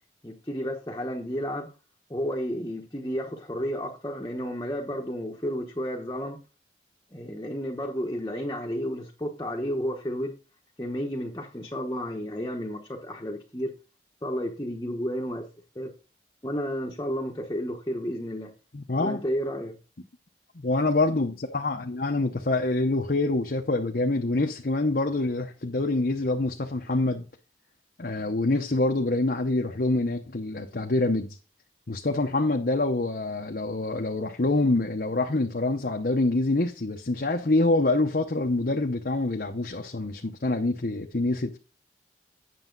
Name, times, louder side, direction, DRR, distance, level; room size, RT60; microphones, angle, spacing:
voice 1, 0.2-1.7 2.1-6.4 7.1-10.3 10.8-13.7 14.2-15.5 15.7-15.9 16.4-18.5 19.0-19.8, equal, 20° left, 1.0 m, -32 dB
voice 2, 18.7-19.2 20.6-27.2 28.0-31.4 31.9-41.6, left 2 dB, 55° left, 0.9 m, -26 dB
9.2 x 6.9 x 3.9 m
head